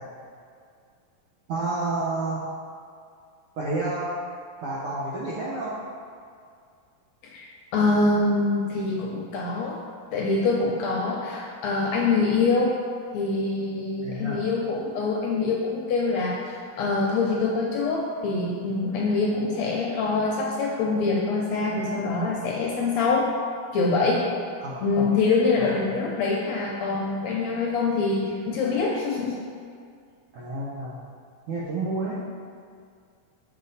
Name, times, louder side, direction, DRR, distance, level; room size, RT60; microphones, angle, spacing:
voice 1, 1.5-2.4 3.6-4.2 4.6-5.8 14.0-14.4 19.5-20.0 24.6-24.8 25.6-25.8 27.2-27.3 30.3-31.0 31.5-32.2, right 2 dB, 75° right, -7 dB, 1.3 m, -30 dB
voice 2, 7.3-9.8 10.1-12.8 13.1-23.3 23.7-24.3 24.8-29.4, left 3 dB, 75° left, -2 dB, 1.7 m, -25 dB
6.6 x 5.6 x 4.1 m, 2.2 s
omnidirectional pair, 3.7 m